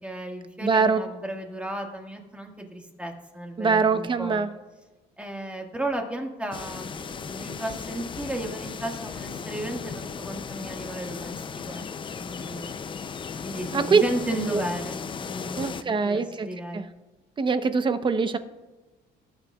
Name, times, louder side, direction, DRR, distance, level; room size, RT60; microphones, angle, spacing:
voice 1, 0.0-4.4 5.2-11.3 11.7-11.8 12.1-12.7 13.4-16.8, right 1 dB, 5° right, 1 dB, 1.8 m, -34 dB
voice 2, 0.6-1.0 3.6-4.5 13.7-14.0 14.5-14.6 15.6-16.5 16.7-16.8 17.4-18.4, right 5 dB, 30° right, 10 dB, 0.9 m, -23 dB
sound 1, 6.5-15.8, left 6 dB, 30° left, 0.5 m, -36 dB
19.0 x 8.9 x 2.4 m, 1.2 s
cardioid pair, 110°, 17 cm